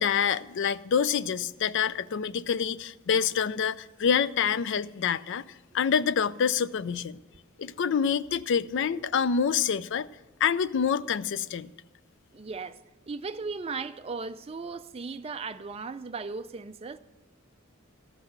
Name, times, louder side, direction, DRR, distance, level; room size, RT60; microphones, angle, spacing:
voice 1, 0.0-5.4 5.7-7.2 7.6-10.1 10.4-11.7, left 7 dB, 55° left, 0.4 m, -27 dB
voice 2, 12.3-12.8 13.1-17.0, right 4 dB, 25° right, 0.4 m, -36 dB
13.5 x 5.8 x 7.9 m
head